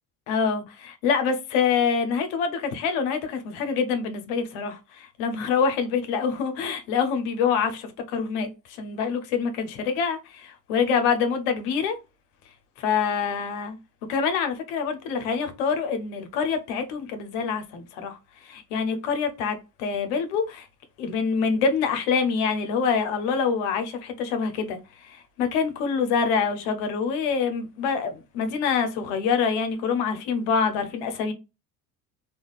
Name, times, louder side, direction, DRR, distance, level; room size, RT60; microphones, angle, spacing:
voice 1, 0.3-12.0 12.8-13.8 14.1-20.7 21.0-31.3, left 6 dB, 80° left, 0.8 m, -26 dB
3.6 x 2.3 x 2.3 m
supercardioid pair, 90°, 39 cm